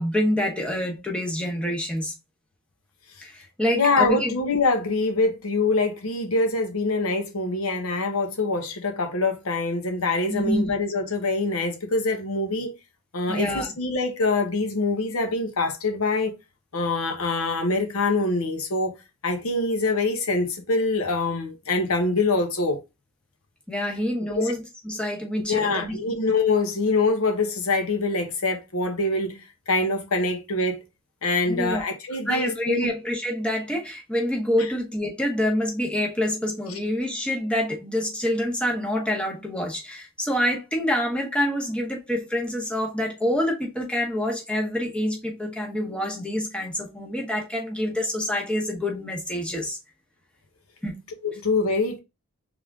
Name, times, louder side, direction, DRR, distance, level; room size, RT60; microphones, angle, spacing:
voice 1, 0.0-2.1 3.2-4.3 10.3-10.7 13.3-13.7 23.7-26.0 31.5-31.9 32.3-49.8 50.8-51.0, left 1 dB, 5° left, 0.8 m, -27 dB
voice 2, 3.7-12.7 13.1-16.3 16.7-19.0 19.2-22.8 24.3-24.5 25.5-29.4 29.7-30.8 31.2-32.9 51.2-52.0, left 3 dB, 85° left, 0.9 m, -24 dB
3.5 x 3.4 x 3.5 m
head